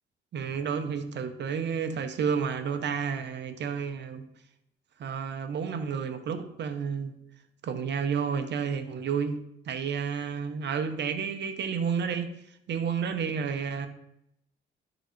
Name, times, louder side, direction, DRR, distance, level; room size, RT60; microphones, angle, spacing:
voice 1, 0.3-4.2 5.0-7.1 7.6-9.4 9.7-12.3 12.7-13.9, right 6 dB, 60° right, 9 dB, 1.0 m, -31 dB
11.5 x 4.0 x 5.2 m, 0.78 s
cardioid pair, 90°, 20 cm